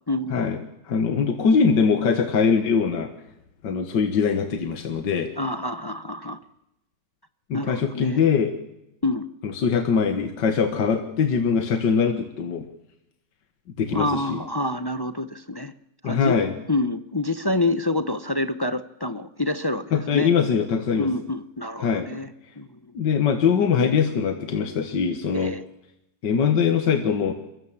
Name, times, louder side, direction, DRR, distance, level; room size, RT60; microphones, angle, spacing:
voice 1, 0.1-0.5 5.4-6.4 7.5-8.2 9.0-9.3 13.9-15.7 16.0-16.4 16.7-20.3 21.0-22.3 22.6-22.7 25.3-25.6, left 2 dB, 30° left, 10 dB, 0.4 m, -27 dB
voice 2, 0.9-3.1 3.6-5.3 7.5-8.5 9.4-12.6 13.8-14.4 16.0-16.5 19.9-21.1 21.8-22.1 22.9-25.5 26.2-27.3, left 6 dB, 75° left, 6 dB, 2.1 m, -22 dB
23.5 x 22.5 x 7.4 m, 0.86 s
omnidirectional pair, 1.9 m